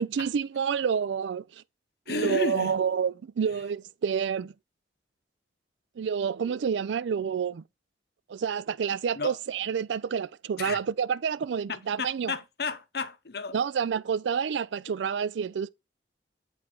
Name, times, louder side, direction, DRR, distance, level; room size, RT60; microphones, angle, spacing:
voice 1, 0.0-1.4 2.1-4.5 6.0-7.6 8.3-12.3 13.5-15.7, right 7 dB, 90° right, 0.4 m, -28 dB
voice 2, 2.1-2.8 9.2-9.4 10.6-10.8 11.7-13.6, left 4 dB, 60° left, 0.7 m, -33 dB
8.6 x 3.6 x 6.1 m
head